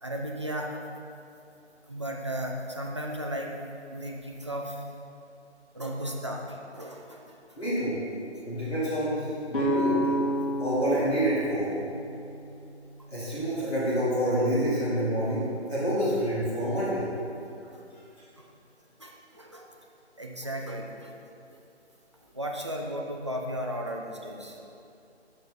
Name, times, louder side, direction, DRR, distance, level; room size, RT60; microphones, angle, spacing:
voice 1, 0.0-0.8 1.8-3.6 3.9-4.8 5.7-7.7 10.4-10.5 18.4-18.5 19.0-19.8 20.2-21.1 22.3-24.9, equal, 25° right, 0 dB, 0.5 m, -35 dB
voice 2, 7.6-7.9 8.4-10.0 10.6-11.7 13.1-17.1, equal, 5° left, -16 dB, 0.8 m, -27 dB
sound 1, 9.5-13.3, right 1 dB, 50° left, 1.8 m, -30 dB
10.0 x 6.1 x 4.1 m, 2.7 s
figure-of-eight pair, 155°, 34 cm